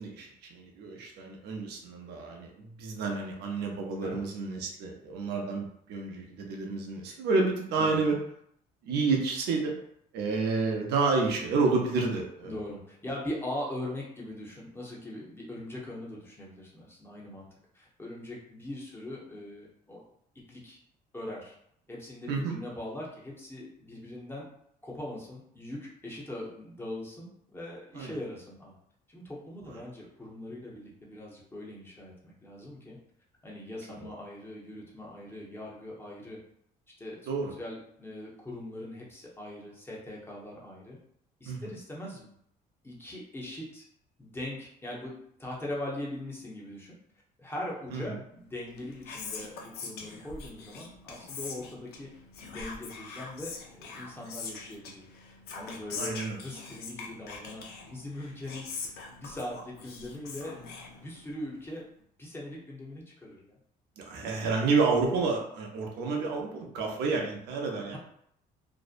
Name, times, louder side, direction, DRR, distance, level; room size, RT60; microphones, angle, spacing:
voice 1, 0.0-8.2 8.8-9.7 10.1-12.5 22.3-22.6 27.9-28.2 29.7-29.8 37.3-37.5 41.4-41.6 47.9-48.2 55.9-56.4 64.0-68.0, right 4 dB, 80° right, 1 dB, 0.6 m, -29 dB
voice 2, 12.4-17.5 17.7-20.0 20.5-20.8 21.1-21.5 21.9-24.5 24.8-28.7 29.1-33.0 33.4-36.4 37.0-37.2 37.6-41.0 41.4-42.3 42.8-43.8 44.2-45.1 45.4-47.0 47.4-52.1 52.4-55.1 55.5-61.9 62.2-63.6 67.8-68.0, left 1 dB, 15° left, -4 dB, 0.7 m, -41 dB
Whispering, 48.6-61.5, left 4 dB, 70° left, 0.5 m, -43 dB
2.6 x 2.0 x 2.4 m, 0.70 s
cardioid pair, 110°, 17 cm